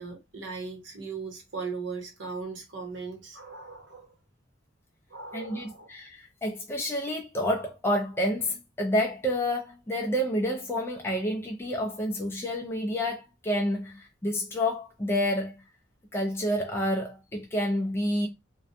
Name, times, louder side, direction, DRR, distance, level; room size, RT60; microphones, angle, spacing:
voice 1, 0.0-4.1 5.1-5.9, right 4 dB, 65° right, 0.8 m, -38 dB
voice 2, 5.3-15.6 16.1-18.3, equal, 10° left, 0.3 m, -29 dB
2.5 x 2.1 x 2.4 m
head